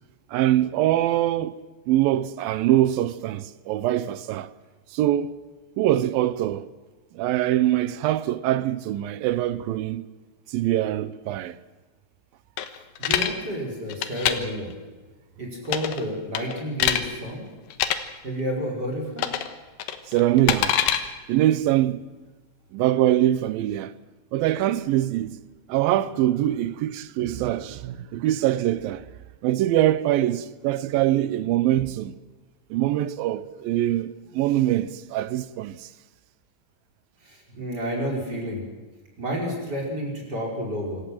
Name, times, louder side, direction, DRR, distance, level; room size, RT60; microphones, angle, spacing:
voice 1, 0.3-4.5 4.9-5.3 5.8-6.7 7.1-10.1 10.5-11.6 20.1-20.8 21.3-22.0 22.7-23.9 24.3-25.4 25.7-29.0 29.4-32.2 32.7-35.9, right 13 dB, 85° right, 2.6 m, -23 dB
sound 1, 12.6-13.3 13.9-14.3 15.7-16.0 16.3-17.0 17.7-18.0 19.2-19.5 19.8-21.0, left 10 dB, 85° left, 3.0 m, -24 dB
voice 2, 13.0-14.7 15.4-17.5 18.2-19.3 37.2-38.6 39.2-41.0, equal, 25° right, 5.8 m, -30 dB
26.0 x 15.0 x 7.8 m
omnidirectional pair, 4.0 m